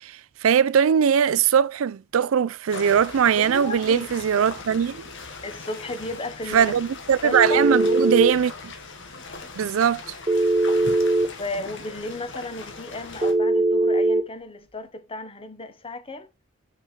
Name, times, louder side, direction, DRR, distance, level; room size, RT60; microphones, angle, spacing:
voice 1, 0.0-5.0 6.5-8.7 9.6-10.1, right 7 dB, 75° right, 0.4 m, -21 dB
sound 1, 2.7-13.3, left 3 dB, 65° left, 1.5 m, -40 dB
voice 2, 3.4-4.1 5.4-6.7 7.2-7.6 11.4-16.3, left 2 dB, 25° left, 0.9 m, -34 dB
Telephone, 7.3-8.3 10.3-11.3 13.2-14.2, right 2 dB, 20° right, 0.7 m, -20 dB
5.9 x 5.7 x 3.3 m
head